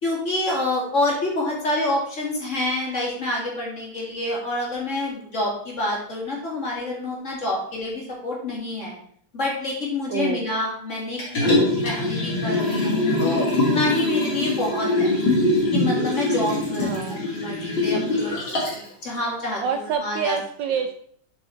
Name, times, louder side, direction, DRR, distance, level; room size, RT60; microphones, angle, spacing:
voice 1, 0.0-9.0 9.3-15.1 15.7-20.4, left 2 dB, 35° left, -4 dB, 2.9 m, -27 dB
voice 2, 10.1-10.5 16.8-17.2 19.6-20.9, right 7 dB, 70° right, 6 dB, 1.2 m, -27 dB
Liquid, 11.2-18.9 19.3-19.4, left 2 dB, 65° left, 3.5 m, -23 dB
7.9 x 5.4 x 4.4 m, 0.62 s
omnidirectional pair, 2.3 m